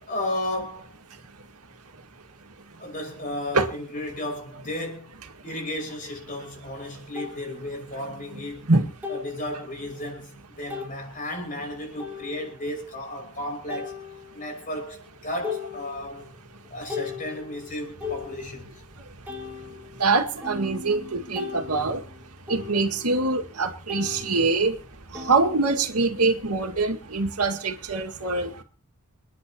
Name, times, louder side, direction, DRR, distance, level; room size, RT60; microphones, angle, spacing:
voice 1, 0.0-0.9 2.8-5.1 5.4-8.7 9.1-14.0 14.3-16.3 16.7-18.7, left 1 dB, 35° left, 6.0 m, -34 dB
sound 1, 6.3-6.4 7.2-7.4 9.0-9.4 10.0-10.1 10.7-11.0 12.0-12.6 13.7-14.5 15.0-15.1 15.4-16.3 16.6-18.8 19.3-23.6 23.9-26.2, left 5 dB, 10° right, 4.7 m, -38 dB
voice 2, 20.0-22.0 22.5-24.7 25.3-28.6, right 3 dB, 85° right, 2.0 m, -24 dB
29.5 x 10.0 x 2.9 m
head